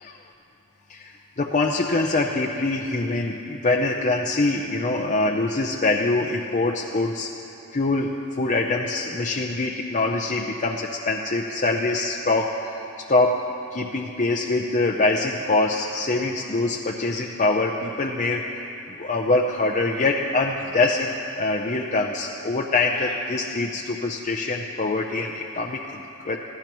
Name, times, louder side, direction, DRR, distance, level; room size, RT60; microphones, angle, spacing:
voice 1, 0.9-7.3 7.7-12.8 13.1-13.4 13.7-18.6 19.0-26.4, left 2 dB, 35° left, 0 dB, 0.6 m, -24 dB
25.5 x 16.0 x 3.1 m, 3.0 s
head